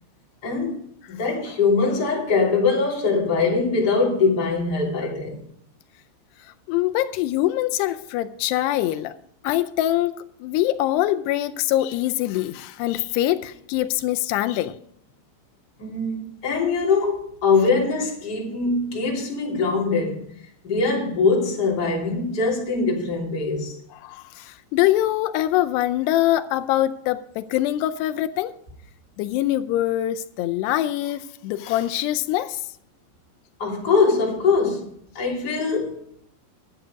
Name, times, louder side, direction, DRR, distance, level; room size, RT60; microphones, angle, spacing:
voice 1, 0.4-0.8 1.1-5.4 15.8-20.3 20.6-23.8 33.6-34.9 35.1-36.0, left 4 dB, 25° left, 3.0 m, -22 dB
voice 2, 6.7-9.1 9.4-14.8 24.0-28.5 29.2-32.6, left 14 dB, 80° left, 2.5 m, -23 dB
11.5 x 9.2 x 5.1 m
omnidirectional pair, 5.1 m